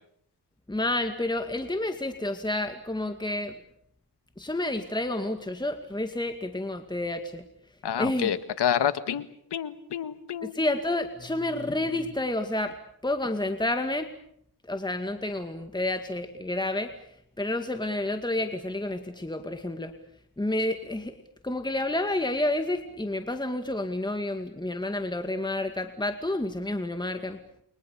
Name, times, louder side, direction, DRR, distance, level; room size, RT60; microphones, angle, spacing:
voice 1, 0.7-3.6 4.4-7.4 8.0-8.3 10.4-12.8 13.0-14.1 14.7-16.9 17.4-19.9 20.4-21.1 21.4-27.4, left 1 dB, 10° left, 6 dB, 2.2 m, -29 dB
voice 2, 7.8-9.3 9.5-10.6, left 9 dB, 85° left, 11 dB, 1.8 m, -28 dB
30.0 x 24.0 x 6.9 m, 0.69 s
cardioid pair, 85°, 40 cm